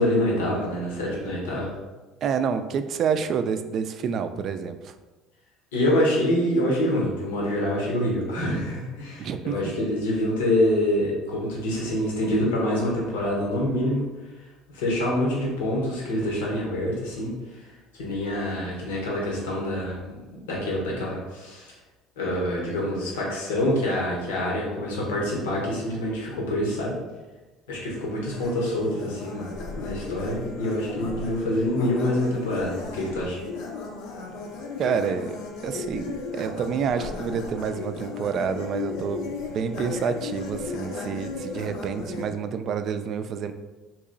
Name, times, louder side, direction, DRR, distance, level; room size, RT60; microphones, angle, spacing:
voice 1, 0.0-1.7 5.7-14.0 14.7-17.3 18.0-20.1 20.5-21.7 22.2-27.0 27.7-29.5 29.8-33.4, left 1 dB, 90° left, -3 dB, 1.0 m, -26 dB
voice 2, 2.2-5.0 9.2-9.7 34.8-39.2 39.5-43.5, right 6 dB, 55° right, 9 dB, 0.3 m, -28 dB
sound 1, 28.3-42.3, left 4 dB, 70° left, 0.6 m, -35 dB
3.0 x 2.9 x 3.8 m, 1.2 s
supercardioid pair, 80°, 0 cm